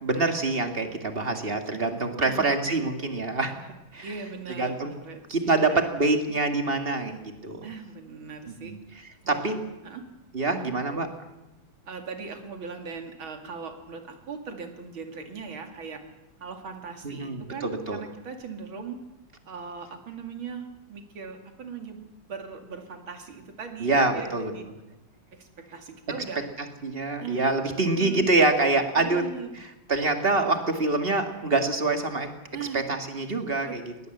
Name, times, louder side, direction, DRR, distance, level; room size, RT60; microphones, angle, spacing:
voice 1, 0.0-3.7 3.9-4.1 4.5-4.9 5.3-7.6 8.6-8.8 9.3-9.5 10.3-11.1 17.0-18.0 23.8-24.5 26.6-29.2 29.9-32.3 32.7-34.1, right 3 dB, 30° right, 6 dB, 2.1 m, -25 dB
voice 2, 4.0-5.8 7.6-8.8 9.2-10.1 10.5-10.7 11.9-16.0 16.4-19.0 19.5-24.7 25.3-26.5 27.2-27.5 28.0-28.3 29.0-29.6 32.5-32.8 33.6-33.8, right 5 dB, 85° right, 5 dB, 3.2 m, -39 dB
20.5 x 17.5 x 8.0 m, 0.99 s
omnidirectional pair, 2.1 m